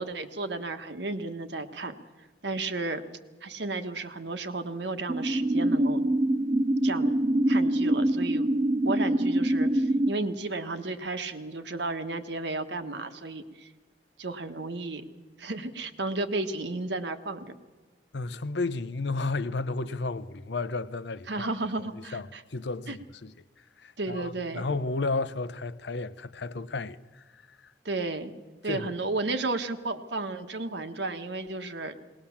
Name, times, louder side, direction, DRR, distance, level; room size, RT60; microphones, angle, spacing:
voice 1, 0.0-1.9 2.4-3.0 3.4-6.0 6.8-7.1 7.5-8.5 8.8-13.7 14.2-15.0 15.4-17.5 21.3-22.4 22.9-23.0 24.0-24.7 27.8-28.3 28.6-32.0, right 2 dB, 70° right, 1.4 m, -33 dB
sound 1, 5.1-10.1, right 1 dB, 30° right, 0.5 m, -24 dB
voice 2, 18.1-21.5 22.1-23.3 23.8-27.7 28.7-29.0, left 3 dB, 70° left, 0.7 m, -33 dB
20.0 x 19.0 x 7.2 m
head